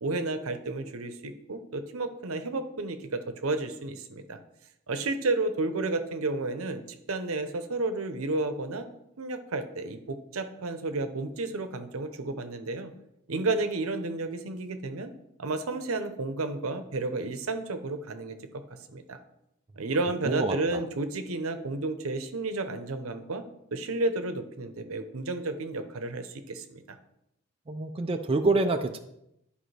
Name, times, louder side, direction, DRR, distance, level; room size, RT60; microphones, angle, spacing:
voice 1, 0.0-4.4 4.9-6.8 7.1-8.9 9.2-12.9 13.3-15.1 15.4-18.6 18.9-19.2 19.8-23.4 23.7-27.0, right 2 dB, 80° right, 8 dB, 0.8 m, -32 dB
voice 2, 20.2-20.8 27.7-29.0, right 3 dB, 25° right, 6 dB, 0.4 m, -27 dB
11.5 x 5.0 x 3.3 m, 0.82 s
head